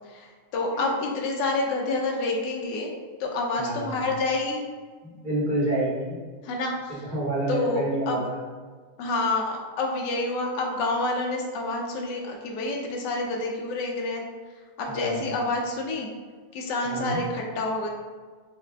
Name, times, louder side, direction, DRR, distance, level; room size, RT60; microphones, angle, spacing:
voice 1, 0.1-2.9 3.2-4.6 6.4-7.0 7.5-8.2 9.0-14.2 14.8-16.1 16.5-17.9, left 2 dB, 70° left, 0 dB, 1.3 m, -28 dB
voice 2, 3.6-4.1 5.0-6.2 6.9-8.4 14.9-15.3 16.8-17.2, right 1 dB, 35° right, -7 dB, 0.9 m, -29 dB
6.3 x 2.1 x 3.3 m, 1.5 s
omnidirectional pair, 2.1 m